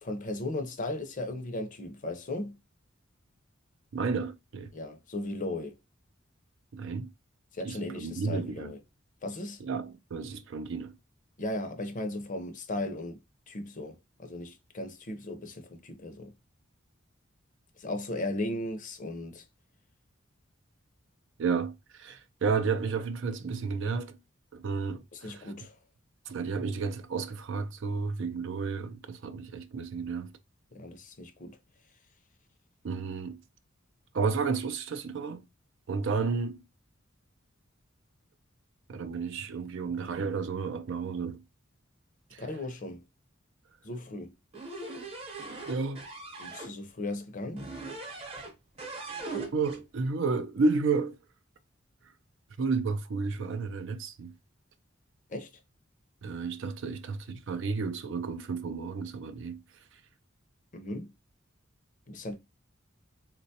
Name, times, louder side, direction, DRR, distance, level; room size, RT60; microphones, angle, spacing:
voice 1, 0.0-2.6 4.7-5.8 7.5-8.8 9.2-9.6 11.4-16.3 17.8-19.4 25.1-25.8 30.7-31.6 42.4-43.0 43.8-44.3 46.4-47.7 55.3-55.5 60.7-61.1 62.1-62.4, left 1 dB, 40° left, 0.6 m, -36 dB
voice 2, 3.9-4.7 6.7-7.1 7.6-8.7 9.6-10.9 21.4-24.2 24.5-25.5 26.3-30.3 32.8-33.4 34.1-35.4 35.9-36.6 38.9-41.4 42.3-42.4 45.7-46.0 49.5-51.2 52.6-54.3 56.2-59.6, right 4 dB, 65° right, 0.4 m, -32 dB
sound 1, 44.5-46.7 47.6-48.5 48.8-49.8, right 3 dB, 30° right, 0.8 m, -40 dB
3.8 x 2.2 x 2.7 m
head